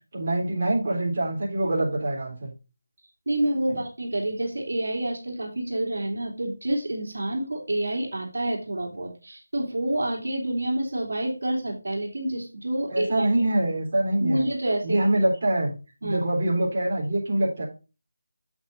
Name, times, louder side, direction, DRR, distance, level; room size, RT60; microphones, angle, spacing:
voice 1, 0.1-2.5 12.9-14.4 14.8-15.7 16.0-17.7, right 1 dB, 35° right, -3 dB, 3.7 m, -24 dB
voice 2, 3.3-13.4 14.2-15.0 16.0-16.2, right 1 dB, 75° right, 1 dB, 2.9 m, -28 dB
8.3 x 8.1 x 2.6 m, 0.31 s
figure-of-eight pair, 175°, 0 cm